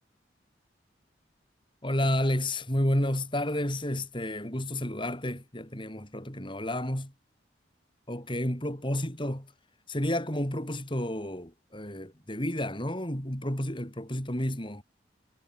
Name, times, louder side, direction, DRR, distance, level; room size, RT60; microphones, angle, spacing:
voice 1, 1.8-7.1 8.1-9.5 9.9-14.8, left 1 dB, 25° left, 5.4 m, -31 dB
head